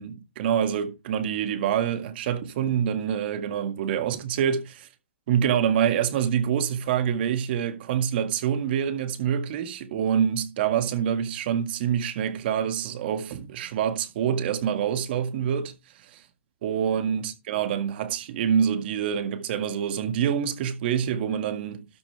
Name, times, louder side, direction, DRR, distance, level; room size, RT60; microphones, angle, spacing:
voice 1, 0.0-4.9 5.3-15.7 16.1-16.2 16.6-21.9, right 8 dB, 55° right, 1.9 m, -26 dB
12.5 x 7.4 x 3.3 m
hypercardioid pair, 140°, 7 cm